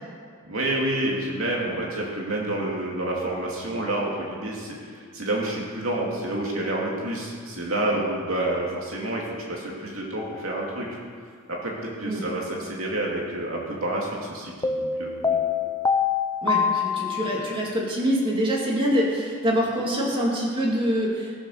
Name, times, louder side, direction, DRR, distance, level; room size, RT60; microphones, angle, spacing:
voice 1, 0.4-11.0 11.5-15.4, right 1 dB, 70° right, -3 dB, 2.7 m, -29 dB
sound 1, 10.2-10.5 14.6-17.7, left 6 dB, 15° left, 0.6 m, -25 dB
voice 2, 16.4-21.3, equal, 25° right, -4 dB, 2.8 m, -25 dB
20.5 x 7.2 x 6.6 m, 2.1 s
head